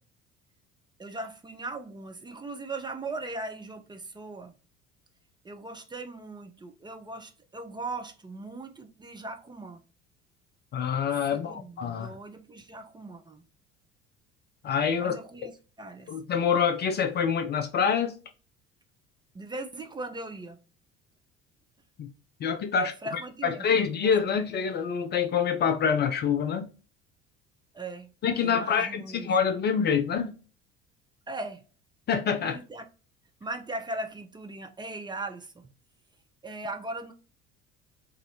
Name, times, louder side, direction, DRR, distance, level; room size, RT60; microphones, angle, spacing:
voice 1, 1.0-4.5 5.4-9.8 11.3-13.4 15.0-15.5 15.8-16.1 19.3-20.6 22.7-24.1 27.7-28.1 28.4-29.3 31.3-31.6 32.4-32.8 33.4-35.7 36.4-37.1, right 2 dB, 15° right, 0.6 m, -39 dB
voice 2, 10.7-12.1 14.6-15.1 16.1-18.2 22.0-22.1 22.4-26.7 28.2-30.3 32.1-32.6, left 7 dB, 30° left, 0.5 m, -26 dB
4.7 x 2.6 x 2.7 m
figure-of-eight pair, 60°, 34 cm